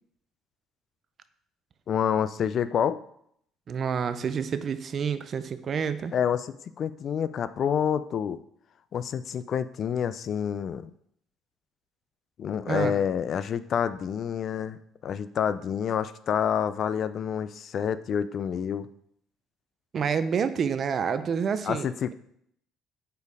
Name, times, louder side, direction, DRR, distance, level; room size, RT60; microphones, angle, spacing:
voice 1, 1.9-3.0 6.1-8.4 8.9-10.9 12.4-14.8 15.0-18.9 21.6-22.1, left 8 dB, 50° left, 14 dB, 0.3 m, -28 dB
voice 2, 3.7-6.1 12.7-12.9 19.9-22.1, right 6 dB, 45° right, 12 dB, 0.5 m, -28 dB
5.3 x 4.5 x 4.7 m, 0.69 s
cardioid pair, 120°, 0 cm